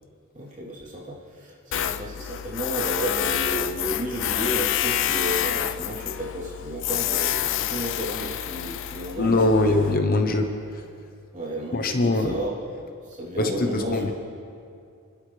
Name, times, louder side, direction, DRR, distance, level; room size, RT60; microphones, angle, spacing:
voice 1, 0.3-9.8 11.3-12.5 13.0-14.1, right 1 dB, 35° right, -6 dB, 3.2 m, -32 dB
Tools, 1.7-10.0, left 11 dB, 60° left, 0.4 m, -28 dB
voice 2, 9.2-10.9 11.7-12.3 13.4-14.1, left 2 dB, 40° left, 5 dB, 0.9 m, -22 dB
26.0 x 12.0 x 3.3 m, 2.4 s
head